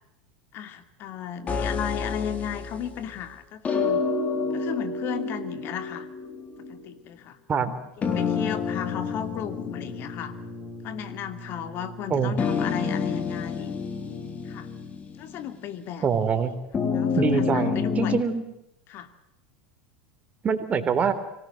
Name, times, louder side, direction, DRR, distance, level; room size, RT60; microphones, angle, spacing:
voice 1, 0.5-4.0 4.5-6.1 6.7-7.4 8.0-10.4 10.8-13.8 14.4-14.7 15.2-16.1 16.9-18.2 18.9-19.1, left 9 dB, 50° left, 10 dB, 2.6 m, -35 dB
sound 1, 1.5-3.1 3.6-6.9 8.0-10.8 11.1-11.2 12.4-15.5 16.7-18.2, left 5 dB, 30° left, 3.8 m, -29 dB
Brass instrument, 8.0-15.1, equal, 15° left, 4.7 m, -43 dB
voice 2, 16.0-16.5 17.1-18.4 20.4-21.1, right 6 dB, 30° right, 9 dB, 3.5 m, -24 dB
25.5 x 18.5 x 7.6 m, 0.85 s
hypercardioid pair, 90°, 5 cm